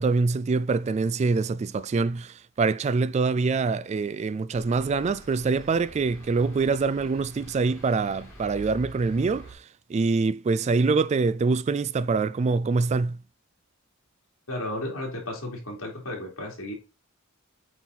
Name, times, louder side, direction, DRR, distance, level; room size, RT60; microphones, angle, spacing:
voice 1, 0.0-9.6 9.9-13.2, right 4 dB, 35° right, 0.3 m, -25 dB
sound 1, 4.5-9.5, right 1 dB, 15° left, 2.8 m, -47 dB
voice 2, 14.5-16.7, left 1 dB, 75° left, 3.3 m, -33 dB
8.3 x 4.2 x 4.0 m
head